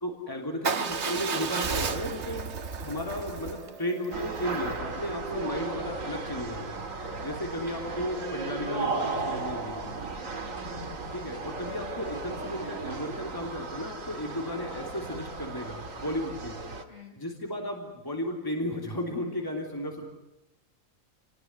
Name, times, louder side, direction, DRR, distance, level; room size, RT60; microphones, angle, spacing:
voice 1, 0.0-2.5 2.8-6.8 7.2-9.9 11.1-16.6 17.2-20.0, left 1 dB, 15° left, 1 dB, 3.3 m, -34 dB
Motorcycle / Engine starting / Idling, 0.6-4.7, right 5 dB, 60° right, 1.4 m, -33 dB
sound 1, 4.1-16.8, right 3 dB, 75° right, 2.5 m, -35 dB
voice 2, 10.2-10.7 11.2-11.6 16.9-17.2, left 5 dB, 60° left, 1 dB, 7.0 m, -52 dB
29.5 x 20.0 x 9.6 m, 0.93 s
omnidirectional pair, 1.4 m